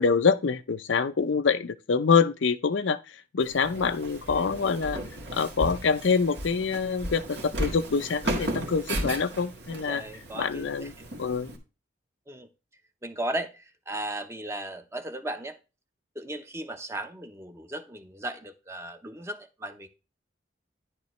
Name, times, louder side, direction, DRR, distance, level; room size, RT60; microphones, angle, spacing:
voice 1, 0.0-5.0 5.3-10.0 10.3-10.9 11.2-11.5, left 5 dB, 85° left, 0.6 m, -25 dB
Walk footsteps, 3.4-11.6, right 1 dB, 65° right, 1.7 m, -35 dB
voice 2, 9.9-10.9 12.3-12.5 13.0-15.6 16.2-19.9, right 1 dB, 15° right, 0.8 m, -36 dB
10.5 x 6.7 x 3.2 m
head